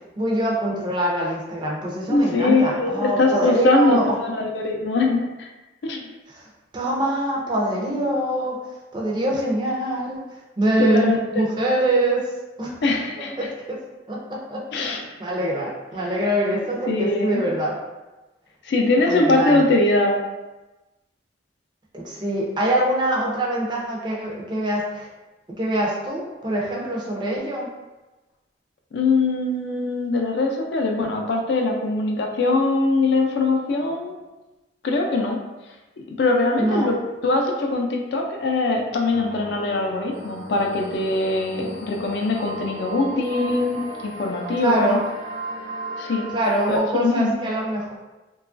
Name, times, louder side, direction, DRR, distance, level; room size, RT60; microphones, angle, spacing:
voice 1, 0.2-4.1 6.3-6.4 6.7-8.6 8.9-10.2 10.6-12.3 12.6-12.7 13.2-13.8 14.1-14.9 15.2-17.8 19.1-19.6 21.9-25.1 25.6-27.7 36.6-36.9 44.6-45.0 46.3-47.9, right 1 dB, 25° right, -3 dB, 0.5 m, -24 dB
voice 2, 2.1-5.5 5.8-6.0 10.8-11.4 12.8-13.4 14.7-15.0 16.2-16.3 16.9-17.4 18.6-20.2 28.9-34.1 34.8-35.4 36.2-37.0 37.2-45.0 46.0-46.3 46.7-47.3, left 2 dB, 60° left, 2 dB, 0.4 m, -22 dB
sound 1, 39.1-46.8, right 2 dB, 90° right, 0.9 m, -35 dB
2.9 x 2.3 x 2.5 m, 1.1 s
head